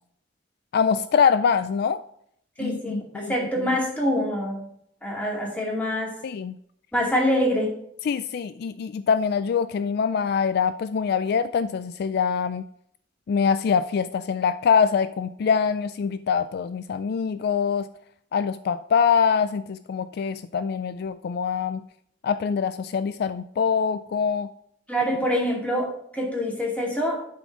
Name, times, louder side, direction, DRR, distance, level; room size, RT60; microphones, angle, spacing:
voice 1, 0.7-2.0 2.6-3.3 6.2-6.6 8.0-12.6 13.3-17.9 18.3-21.8 22.2-24.5, left 6 dB, 55° left, 13 dB, 0.3 m, -24 dB
voice 2, 2.6-4.7 5.0-6.1 6.9-7.7 24.9-27.2, equal, 10° left, -2 dB, 2.2 m, -25 dB
11.0 x 4.3 x 6.0 m, 0.70 s
head